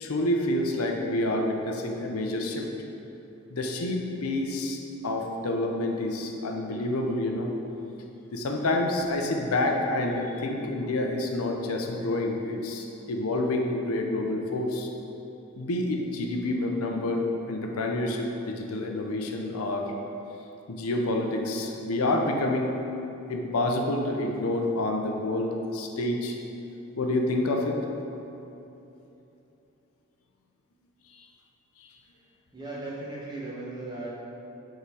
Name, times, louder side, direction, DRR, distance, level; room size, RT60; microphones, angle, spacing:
voice 1, 0.0-2.7 3.5-4.8 5.0-7.5 8.3-14.9 15.6-19.9 20.7-22.8 23.3-26.4 27.0-27.8 31.8-31.9, left 1 dB, 90° left, 2 dB, 0.6 m, -28 dB
voice 2, 32.5-34.1, right 2 dB, 20° right, -7 dB, 1.2 m, -37 dB
5.5 x 3.7 x 4.7 m, 2.9 s
head